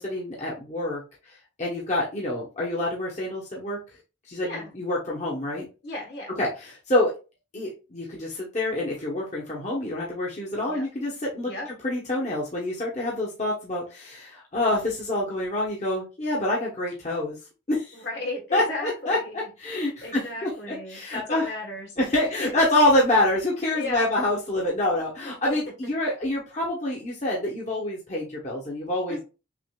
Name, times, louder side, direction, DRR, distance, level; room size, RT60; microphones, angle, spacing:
voice 1, 0.0-1.3 1.6-3.8 4.2-5.7 6.4-7.1 7.5-11.5 11.8-17.4 17.7-18.0 18.5-21.5 22.0-29.2, left 1 dB, 40° left, -4 dB, 0.9 m, -27 dB
voice 2, 4.4-4.7 5.8-6.3 10.7-10.9 11.4-11.7 17.9-22.6 23.7-24.1 25.2-25.6 29.1-29.2, left 1 dB, 65° left, 0 dB, 1.3 m, -35 dB
6.0 x 2.4 x 2.2 m, 0.31 s
head